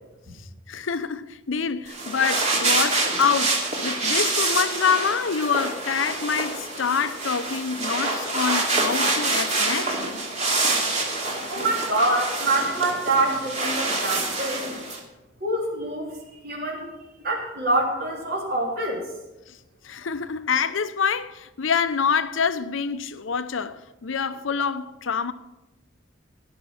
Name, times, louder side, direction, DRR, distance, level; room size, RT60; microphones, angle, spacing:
voice 1, 0.4-10.0 11.5-11.6 19.5-19.6 19.8-25.3, left 6 dB, 80° left, 0.7 m, -26 dB
sound 1, 1.9-15.0, right 3 dB, 35° right, 2.5 m, -26 dB
voice 2, 11.5-14.6 15.4-16.2 16.4-16.9 17.2-19.0, right 2 dB, 55° right, 3.4 m, -25 dB
16.5 x 6.0 x 7.3 m
head